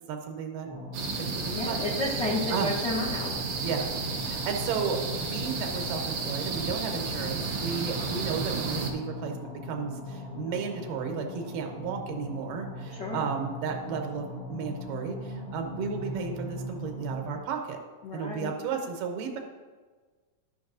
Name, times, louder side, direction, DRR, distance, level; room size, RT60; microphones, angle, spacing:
voice 1, 0.1-0.7 1.4-1.9 2.5-2.7 3.6-3.9 4.2-5.0 5.3-17.8 18.1-19.4, right 6 dB, 90° right, 3 dB, 2.5 m, -33 dB
sound 1, 0.6-17.3, left 1 dB, 50° left, 0.7 m, -40 dB
sound 2, 0.9-8.9, right 4 dB, 70° right, 1.3 m, -32 dB
voice 2, 1.6-3.4 12.9-13.2 18.0-18.6, left 2 dB, 65° left, -7 dB, 1.1 m, -32 dB
12.5 x 6.0 x 2.6 m, 1.4 s
omnidirectional pair, 3.8 m